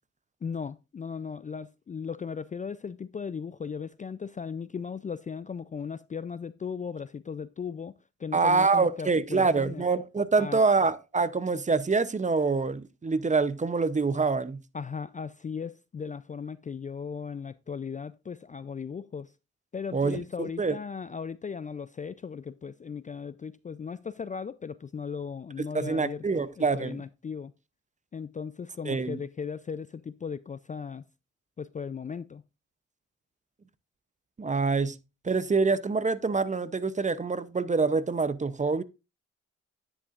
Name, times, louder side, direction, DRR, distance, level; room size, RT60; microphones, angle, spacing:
voice 1, 0.4-7.9 8.2-9.8 10.4-10.6 14.7-19.3 19.7-27.5 28.1-31.0 31.6-32.4, left 6 dB, 25° left, 0.3 m, -37 dB
voice 2, 8.3-14.6 19.9-20.7 25.7-27.0 28.8-29.2 34.4-35.0 35.2-38.8, right 4 dB, 25° right, 0.6 m, -26 dB
9.8 x 7.8 x 2.4 m
cardioid pair, 60°, 30 cm